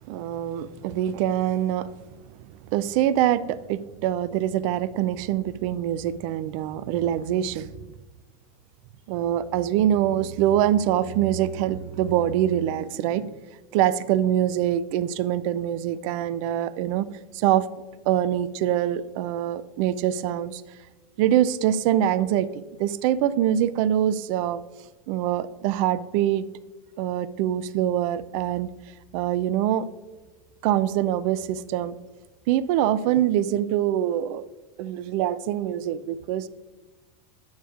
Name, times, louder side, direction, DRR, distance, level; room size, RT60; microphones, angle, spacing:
voice 1, 0.1-1.9 2.7-7.7 9.1-13.4 13.7-17.1 17.3-17.7 18.1-20.6 21.2-24.6 25.1-26.5 27.0-28.7 29.1-29.9 30.6-32.0 32.5-34.4 34.8-36.5, right 11 dB, 60° right, 16 dB, 0.5 m, -24 dB
9.4 x 8.6 x 2.5 m, 1.3 s
supercardioid pair, 145°, 19 cm